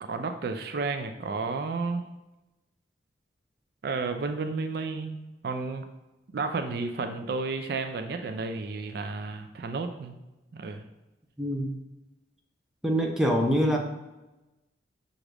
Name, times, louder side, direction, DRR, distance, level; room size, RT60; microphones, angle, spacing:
voice 1, 0.0-2.0 3.8-5.9 6.3-10.2 10.5-10.8, right 4 dB, 60° right, 7 dB, 0.4 m, -32 dB
voice 2, 11.4-11.8 12.8-13.8, equal, 5° right, 1 dB, 0.5 m, -24 dB
5.9 x 2.5 x 3.3 m, 1.0 s
head